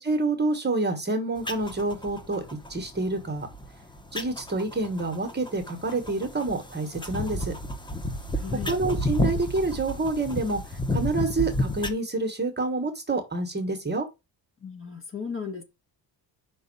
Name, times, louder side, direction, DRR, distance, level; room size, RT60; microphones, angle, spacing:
voice 1, 0.0-2.4 2.7-3.5 4.1-7.5 8.6-10.6 10.9-14.1, right 3 dB, 25° right, 1.2 m, -28 dB
sound 1, 1.4-11.9, left 1 dB, 10° left, 0.8 m, -32 dB
voice 2, 8.3-8.7 14.6-15.6, left 6 dB, 30° left, 1.4 m, -35 dB
5.4 x 4.0 x 5.3 m
cardioid pair, 130°, 44 cm